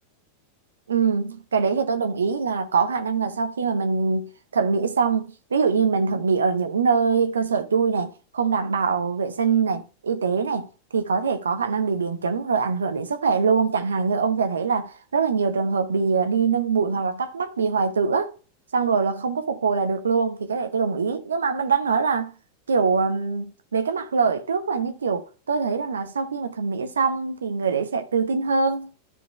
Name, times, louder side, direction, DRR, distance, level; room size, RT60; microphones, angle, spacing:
voice 1, 0.9-18.3 18.7-22.3 22.7-28.9, right 5 dB, 70° right, 1.0 m, -23 dB
13.0 x 4.3 x 3.2 m
figure-of-eight pair, 90°, 0 cm